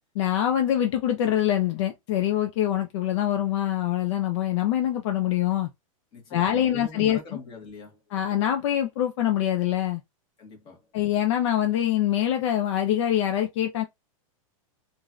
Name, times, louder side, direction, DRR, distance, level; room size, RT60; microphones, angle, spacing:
voice 1, 0.2-5.7 6.3-7.2 8.1-10.0 10.9-13.8, left 11 dB, 60° left, 0.5 m, -24 dB
voice 2, 6.1-8.0 10.4-10.9, left 3 dB, 25° left, 1.4 m, -43 dB
3.0 x 2.6 x 2.3 m
supercardioid pair, 155°, 18 cm